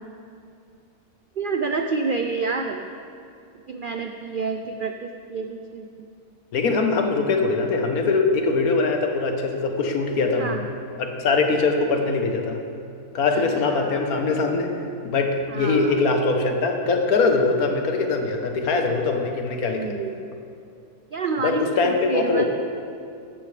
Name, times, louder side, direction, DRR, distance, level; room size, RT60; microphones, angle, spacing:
voice 1, 1.4-2.9 3.7-6.1 10.4-10.6 13.3-14.1 15.5-16.0 19.7-20.3 21.1-22.4, right 4 dB, 80° right, 5 dB, 0.4 m, -28 dB
voice 2, 6.5-10.6 11.0-12.6 13.1-14.7 15.0-20.0 21.4-22.4, left 3 dB, 75° left, 4 dB, 1.5 m, -22 dB
14.0 x 12.0 x 3.3 m, 2.4 s
omnidirectional pair, 1.6 m